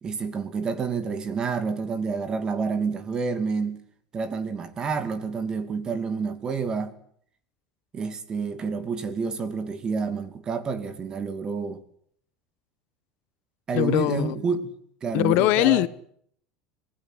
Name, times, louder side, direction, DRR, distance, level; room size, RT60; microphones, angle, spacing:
voice 1, 0.0-3.8 4.1-7.0 7.9-11.8 13.7-14.7 15.0-15.9, right 5 dB, 25° right, 2.5 m, -29 dB
voice 2, 13.7-14.4 15.1-15.9, left 18 dB, 60° left, 1.1 m, -21 dB
25.5 x 19.5 x 8.1 m
supercardioid pair, 150°, 3 cm